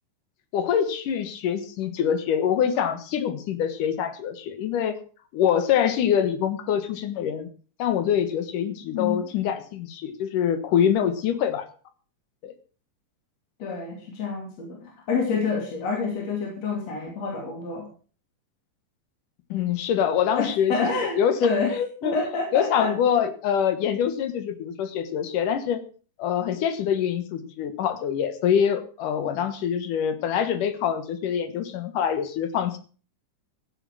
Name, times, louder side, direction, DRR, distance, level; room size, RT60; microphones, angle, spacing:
voice 1, 0.5-5.0 5.3-7.5 7.8-11.7 12.4-12.5 19.5-20.7 21.0-21.4 21.7-22.2 22.5-25.8 26.2-32.8, left 8 dB, 85° left, 11 dB, 3.0 m, -25 dB
voice 2, 8.9-9.3 13.6-17.9 20.4-21.7 22.0-22.9, left 4 dB, 55° left, 0 dB, 4.1 m, -27 dB
14.5 x 8.5 x 6.1 m, 0.39 s
omnidirectional pair, 3.6 m